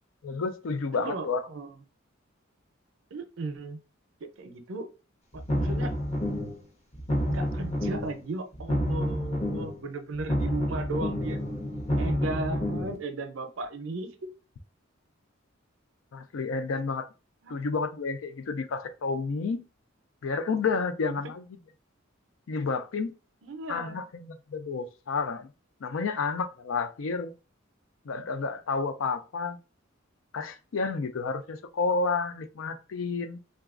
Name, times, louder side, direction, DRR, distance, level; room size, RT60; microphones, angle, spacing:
voice 1, 0.2-1.5 16.1-17.1 17.5-19.6 20.2-21.4 22.5-23.1 23.7-25.5 25.8-27.3 28.1-29.6 30.3-33.4, left 4 dB, 75° left, 0.4 m, -30 dB
voice 2, 0.9-1.8 3.1-3.8 4.2-4.9 5.3-5.9 7.3-11.4 12.0-14.3 17.4-17.6 21.1-21.2 23.4-24.1, right 2 dB, 70° right, 0.5 m, -36 dB
sound 1, 5.3-6.6 6.9-8.2 8.5-9.8 10.1-13.0, equal, 30° left, 0.8 m, -29 dB
3.9 x 2.3 x 2.4 m
head